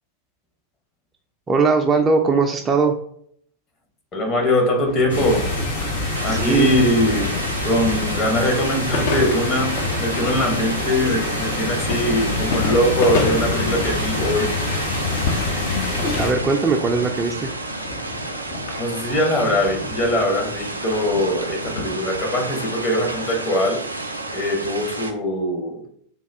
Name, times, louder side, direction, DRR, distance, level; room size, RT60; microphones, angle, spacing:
voice 1, 1.5-2.9 6.3-6.7 16.1-17.5, right 4 dB, 20° right, 0.4 m, -19 dB
voice 2, 4.1-5.5 6.2-7.3 7.6-14.6 18.8-23.8 24.3-25.9, left 1 dB, 30° left, 0.9 m, -22 dB
sound 1, 4.9-22.4, left 4 dB, 55° left, 0.6 m, -32 dB
sound 2, 5.1-16.3, left 2 dB, 75° left, 1.2 m, -26 dB
sound 3, 6.1-25.1, right 2 dB, 85° right, 0.4 m, -31 dB
3.5 x 2.3 x 3.3 m
figure-of-eight pair, 90°, 0 cm